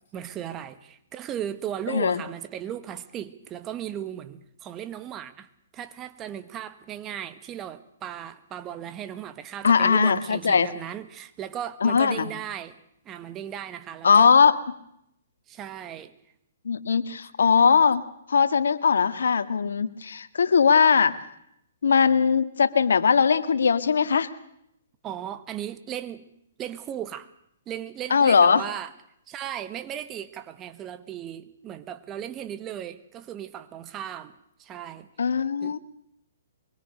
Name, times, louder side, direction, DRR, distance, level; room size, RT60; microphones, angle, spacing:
voice 1, 0.1-5.5 5.7-12.8 13.0-14.3 15.5-16.1 25.0-26.3 26.6-27.3 27.7-28.9 29.3-34.3 34.6-35.1 35.6-35.7, right 10 dB, 20° right, 1.5 m, -36 dB
voice 2, 1.9-2.2 9.6-10.7 11.8-12.3 14.0-14.6 16.7-18.0 18.3-21.1 21.8-24.3 28.1-28.6 35.2-35.8, left 6 dB, 80° left, 1.8 m, -20 dB
24.0 x 23.0 x 6.7 m
hypercardioid pair, 145°, 0 cm